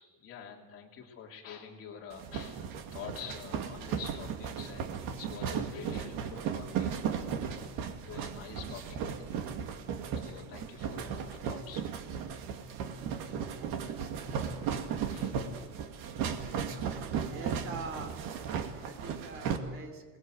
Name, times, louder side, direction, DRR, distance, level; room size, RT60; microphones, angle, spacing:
voice 1, 0.0-7.7 8.0-9.3 10.1-11.8 13.5-13.6 15.1-15.4, left 7 dB, 35° left, 0 dB, 3.2 m, -47 dB
sound 1, 2.1-19.6, right 7 dB, 60° right, 2.3 m, -36 dB
voice 2, 17.0-18.2 18.5-20.2, right 4 dB, 35° right, 6 dB, 3.1 m, -43 dB
27.5 x 20.0 x 7.9 m, 1.3 s
cardioid pair, 175°, 39 cm